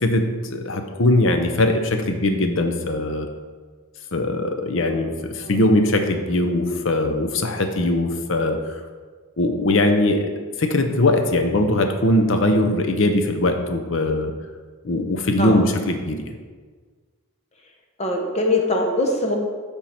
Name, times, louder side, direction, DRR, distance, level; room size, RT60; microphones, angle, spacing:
voice 1, 0.0-3.3 4.1-8.8 9.4-10.3 10.6-14.3 14.8-16.4, left 1 dB, 60° left, 6 dB, 0.7 m, -21 dB
voice 2, 4.7-5.1 5.4-5.6 15.4-15.6 18.0-19.4, left 1 dB, 30° left, 1 dB, 0.8 m, -23 dB
9.3 x 3.6 x 4.4 m, 1.5 s
head